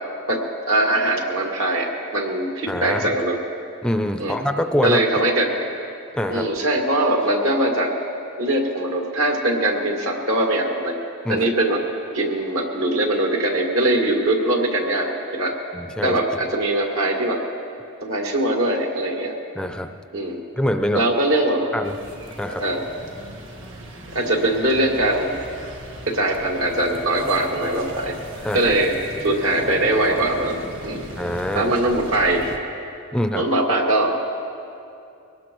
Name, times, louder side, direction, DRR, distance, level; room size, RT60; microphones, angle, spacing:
voice 1, 0.3-3.4 4.2-4.4 4.8-5.5 6.3-7.9 8.4-11.0 11.3-11.8 12.1-15.6 16.0-17.4 18.0-19.4 20.1-20.4 20.9-21.6 22.6-22.8 24.1-25.4 26.1-28.1 28.5-30.6 30.8-31.0 31.5-32.4 33.3-34.1, right 1 dB, 80° right, 0 dB, 2.1 m, -21 dB
voice 2, 2.7-3.1 3.8-5.2 6.2-6.5 11.2-11.5 15.7-16.2 19.6-19.9 20.6-21.0 21.7-22.0 22.4-22.6 28.4-28.7 31.2-31.7 33.1-33.5, left 1 dB, 5° left, 6 dB, 0.4 m, -24 dB
sound 1, 21.8-32.6, right 1 dB, 60° right, 1.5 m, -39 dB
22.5 x 18.5 x 3.1 m, 2.6 s
head